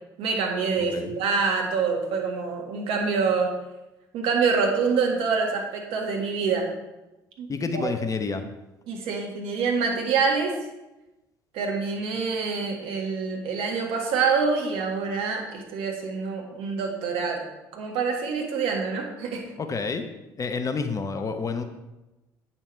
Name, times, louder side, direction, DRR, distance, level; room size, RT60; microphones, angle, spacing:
voice 1, 0.2-3.5 4.1-6.7 7.4-7.5 7.7-7.9 8.9-10.5 11.5-17.4 17.7-19.4, right 5 dB, 60° right, 1 dB, 1.8 m, -26 dB
voice 2, 0.8-1.1 7.5-8.4 19.6-20.1 20.4-21.6, left 4 dB, 30° left, 7 dB, 0.9 m, -29 dB
8.9 x 5.9 x 4.5 m, 1.0 s
figure-of-eight pair, 55°, 11 cm